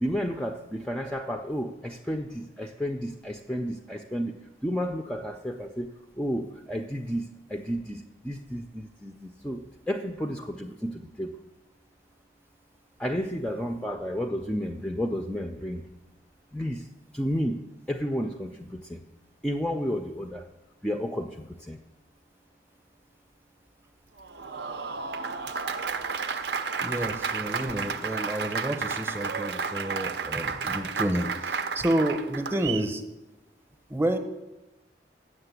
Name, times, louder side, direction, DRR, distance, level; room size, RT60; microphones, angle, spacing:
voice 1, 0.0-4.3 4.6-5.9 6.2-9.1 9.4-9.6 9.9-11.3 13.0-15.9 16.5-16.8 17.1-17.6 17.9-19.0 19.4-20.4 20.8-21.3 21.7-21.8, equal, 5° left, 4 dB, 0.4 m, -31 dB
Applause, 24.2-32.9, right 5 dB, 65° right, 0.6 m, -32 dB
voice 2, 26.8-33.0 33.9-34.2, right 1 dB, 15° right, 7 dB, 0.7 m, -29 dB
7.7 x 6.7 x 8.1 m, 0.99 s
head